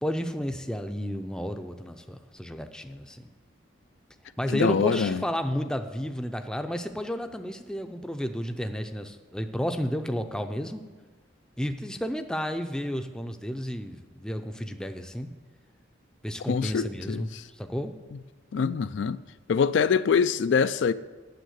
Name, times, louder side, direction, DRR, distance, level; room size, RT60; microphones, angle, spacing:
voice 1, 0.0-3.2 4.4-10.8 11.6-15.3 16.2-17.9, equal, 5° left, 0.5 m, -32 dB
voice 2, 4.5-5.2 16.5-17.4 18.5-19.2 19.5-20.9, left 6 dB, 70° left, 0.4 m, -24 dB
9.2 x 7.4 x 8.0 m
head